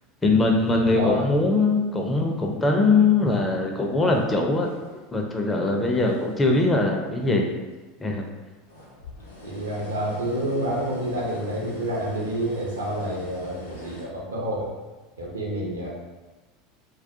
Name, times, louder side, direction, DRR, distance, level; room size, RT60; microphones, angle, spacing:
voice 1, 0.2-4.7 5.1-7.5 8.0-8.2, left 3 dB, 15° left, 1 dB, 0.4 m, -21 dB
voice 2, 0.9-1.3 9.4-14.7 15.2-15.9, right 1 dB, 80° right, -4 dB, 0.6 m, -28 dB
sound 1, 4.0-5.3 5.7-7.3 7.7-7.8 8.5-14.1, left 1 dB, 85° left, 0.5 m, -44 dB
2.3 x 2.1 x 2.6 m, 1.2 s
figure-of-eight pair, 75°, 0 cm